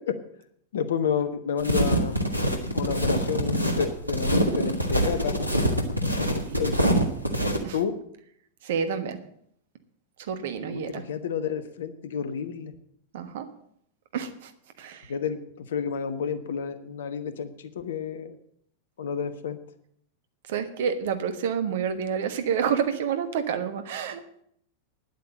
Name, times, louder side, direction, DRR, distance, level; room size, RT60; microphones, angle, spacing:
voice 1, 0.7-2.2 2.7-5.4 6.3-6.8 7.7-7.9 10.7-12.7 15.1-18.4 19.0-19.6, left 7 dB, 60° left, 11 dB, 1.2 m, -30 dB
sound 1, 1.6-7.6, right 1 dB, 90° right, 1.5 m, -25 dB
voice 2, 6.2-6.6 7.6-7.8 8.6-9.2 10.2-11.0 13.1-13.5 14.1-14.5 14.8-15.1 20.5-24.2, right 7 dB, 55° right, 9 dB, 1.3 m, -29 dB
10.0 x 8.3 x 8.7 m, 0.67 s
figure-of-eight pair, 90°, 0 cm